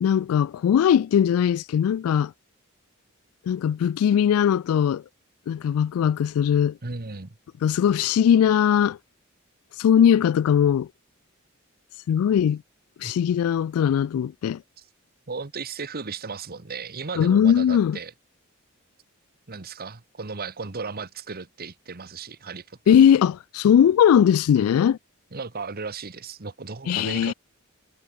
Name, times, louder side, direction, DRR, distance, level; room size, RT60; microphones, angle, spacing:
voice 1, 0.0-2.3 3.5-5.0 5.5-6.8 7.6-9.0 9.8-10.9 12.1-12.6 13.0-14.6 17.2-18.0 22.9-25.0 26.9-27.3, left 8 dB, 80° left, 0.3 m, -20 dB
voice 2, 6.8-7.4 13.0-13.1 14.8-14.9 15.3-18.1 19.5-23.0 24.5-24.7 25.3-27.3, right 4 dB, 45° right, 1.3 m, -35 dB
head